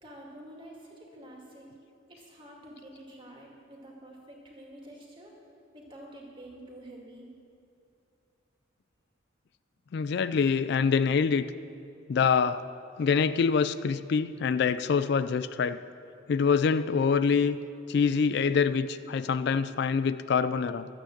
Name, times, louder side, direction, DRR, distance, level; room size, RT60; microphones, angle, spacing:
voice 1, 0.0-1.7 2.1-5.3 5.7-7.4, right 1 dB, 25° right, -2 dB, 2.3 m, -48 dB
voice 2, 9.9-11.5 12.1-12.6 13.0-15.8 16.3-17.6 17.9-20.9, left 6 dB, 55° left, 13 dB, 0.3 m, -25 dB
13.0 x 8.8 x 7.3 m, 2.7 s
head